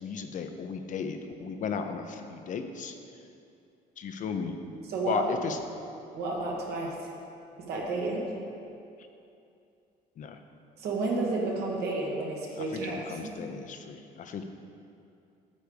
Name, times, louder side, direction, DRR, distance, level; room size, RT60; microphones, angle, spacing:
voice 1, 0.0-2.9 4.0-4.6 5.1-5.6 10.2-10.4 12.6-14.4, left 6 dB, 50° left, 7 dB, 0.6 m, -35 dB
voice 2, 4.9-5.2 6.1-7.1 7.7-8.2 10.8-13.3, right 3 dB, 70° right, -2 dB, 1.6 m, -31 dB
9.2 x 3.5 x 6.8 m, 2.6 s
cardioid pair, 110°, 17 cm